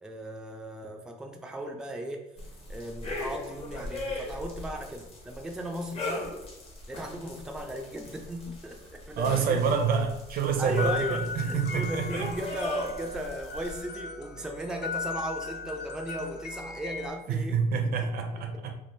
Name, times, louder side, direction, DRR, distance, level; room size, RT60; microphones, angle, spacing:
voice 1, 0.0-2.2 2.7-6.3 6.9-9.7 10.6-17.6 18.0-18.1, right 1 dB, 5° right, 0.3 m, -37 dB
sound 1, 2.4-13.8, left 1 dB, 35° left, 0.9 m, -39 dB
voice 2, 9.2-12.3 17.3-18.7, right 5 dB, 60° right, 0.5 m, -27 dB
sound 2, 10.7-17.1, left 4 dB, 75° left, 0.5 m, -37 dB
3.5 x 2.3 x 2.6 m
cardioid pair, 110°, 17 cm